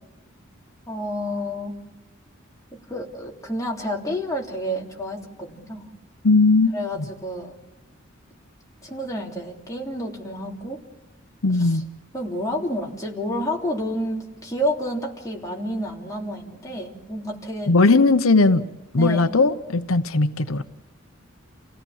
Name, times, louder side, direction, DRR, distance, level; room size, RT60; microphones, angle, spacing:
voice 1, 0.9-1.8 2.7-5.8 6.7-7.5 8.8-10.8 11.6-11.8 12.1-17.7 19.0-19.3, equal, 15° left, -2 dB, 3.1 m, -29 dB
voice 2, 6.2-6.7 11.4-11.8 17.7-18.6 18.9-20.6, left 3 dB, 85° left, 10 dB, 0.9 m, -18 dB
29.0 x 17.0 x 7.3 m, 1.1 s
head